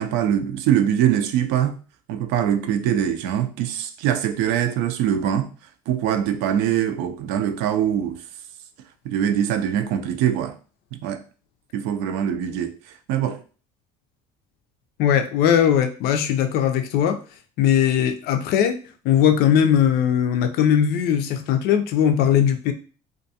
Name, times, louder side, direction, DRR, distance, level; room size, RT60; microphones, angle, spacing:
voice 1, 0.0-1.8 2.1-5.5 5.9-8.2 9.0-10.5 11.0-11.2 11.7-12.7 13.1-13.4, right 9 dB, 75° right, 0.4 m, -23 dB
voice 2, 15.0-17.2 17.6-18.8 19.0-22.7, left 9 dB, 65° left, 0.4 m, -19 dB
2.5 x 2.2 x 2.7 m
supercardioid pair, 80°, 17 cm